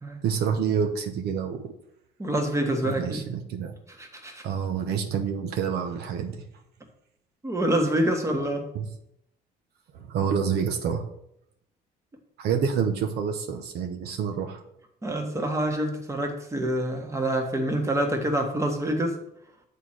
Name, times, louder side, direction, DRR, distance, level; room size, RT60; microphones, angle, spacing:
voice 1, 0.2-1.7 2.8-3.7 4.4-6.4 8.7-8.9 9.9-11.0 12.4-14.6, right 7 dB, 70° right, 5 dB, 1.0 m, -28 dB
voice 2, 2.2-3.3 4.0-4.4 7.4-8.6 15.0-19.2, right 1 dB, 15° right, 3 dB, 1.6 m, -26 dB
7.3 x 4.4 x 6.4 m, 0.75 s
cardioid pair, 110°, 17 cm